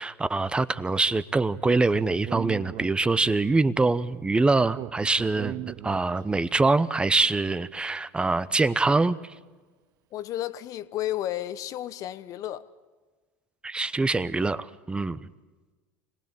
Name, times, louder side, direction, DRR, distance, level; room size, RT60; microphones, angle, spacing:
voice 1, 0.0-5.6 5.8-9.2 13.6-15.3, right 3 dB, 15° right, 0.9 m, -24 dB
Speech, 1.6-3.4 4.7-6.5, right 13 dB, 50° right, 0.7 m, -38 dB
voice 2, 10.1-12.7, left 13 dB, 50° left, 1.1 m, -32 dB
26.0 x 18.5 x 8.8 m
hypercardioid pair, 95°, 8 cm